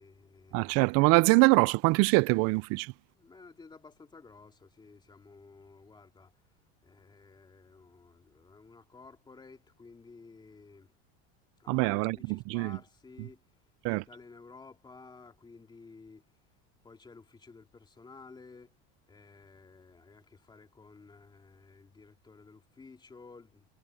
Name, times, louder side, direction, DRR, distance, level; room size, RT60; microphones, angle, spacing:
voice 1, 0.0-0.8 3.1-6.3 6.8-10.9 11.6-13.4 13.9-16.2 16.8-18.8 19.1-23.6, left 4 dB, 15° left, 2.3 m, -53 dB
voice 2, 0.5-2.9 11.7-12.8 13.8-14.0, right 27 dB, 50° right, 0.4 m, -24 dB
supercardioid pair, 145°, 32 cm